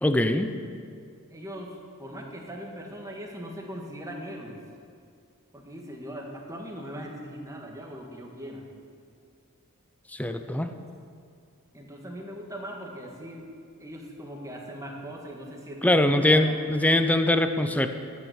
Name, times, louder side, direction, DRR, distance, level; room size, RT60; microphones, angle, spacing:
voice 1, 0.0-0.5 10.1-10.7 15.8-17.9, left 1 dB, 5° left, 8 dB, 0.6 m, -22 dB
voice 2, 1.3-4.6 5.5-8.6 11.7-13.5 13.8-16.6, equal, 15° right, 0 dB, 1.7 m, -40 dB
12.0 x 9.3 x 8.2 m, 2.3 s
head